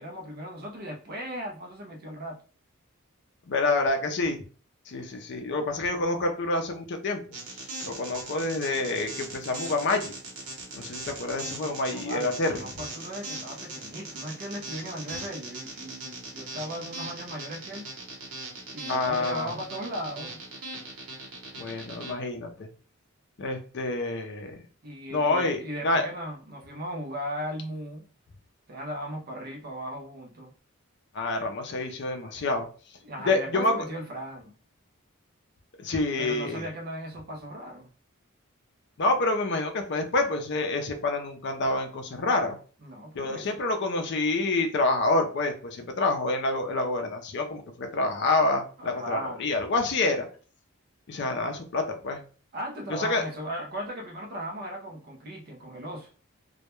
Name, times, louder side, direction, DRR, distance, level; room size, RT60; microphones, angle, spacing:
voice 1, 0.0-2.4 11.9-17.9 18.7-20.4 24.8-28.1 28.7-30.5 33.0-34.5 36.2-37.9 42.8-43.5 48.8-49.5 52.5-56.1, equal, 45° right, 0.5 m, -37 dB
voice 2, 3.5-4.4 4.9-7.2 7.8-10.1 10.7-12.5 18.9-19.5 21.6-22.7 23.4-24.5 25.1-26.0 31.1-32.7 33.3-33.7 35.8-36.6 39.0-42.6 43.1-50.2 51.1-52.2 52.9-53.2, left 2 dB, 55° left, 0.4 m, -27 dB
sound 1, 7.3-22.1, right 2 dB, 90° right, 0.9 m, -39 dB
2.2 x 2.1 x 2.9 m
head